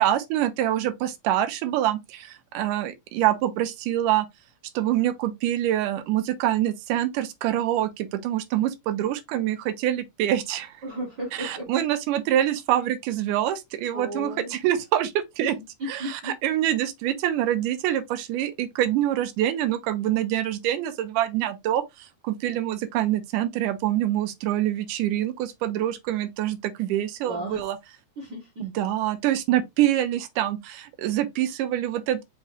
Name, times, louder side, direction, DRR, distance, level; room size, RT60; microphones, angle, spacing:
voice 1, 0.0-4.3 4.8-10.7 11.4-15.6 15.9-27.8 28.6-32.2, right 12 dB, 85° right, 2.2 m, -25 dB
voice 2, 10.8-11.7 13.9-14.6 15.4-16.3 27.2-27.6 28.2-28.7, equal, 60° right, 1.2 m, -35 dB
5.6 x 2.9 x 3.0 m
omnidirectional pair, 3.7 m